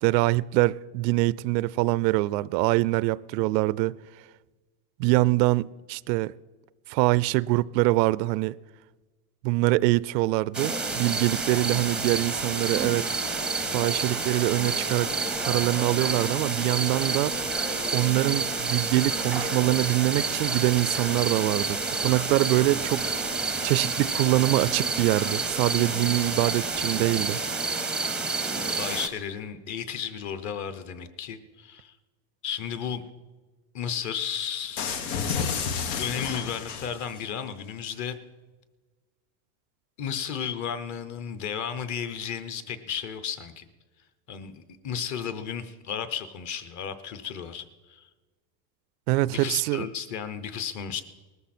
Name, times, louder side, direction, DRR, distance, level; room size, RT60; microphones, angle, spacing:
voice 1, 0.0-4.0 5.0-6.3 6.9-8.6 9.4-13.1 13.7-15.1 15.4-17.3 17.9-23.0 23.6-27.4 49.1-49.8, right 19 dB, 80° right, 0.6 m, -24 dB
sound 1, 10.5-29.1, right 3 dB, ahead, 0.6 m, -29 dB
sound 2, 10.7-27.0, left 5 dB, 70° left, 4.0 m, -50 dB
voice 2, 28.7-31.9 32.4-33.0 33.7-35.0 36.0-38.2 40.0-43.6 44.3-48.1 49.3-51.0, left 8 dB, 35° left, 0.9 m, -34 dB
sound 3, 34.8-37.2, left 6 dB, 90° left, 1.8 m, -30 dB
19.0 x 14.0 x 4.3 m
supercardioid pair, 155°, 50 cm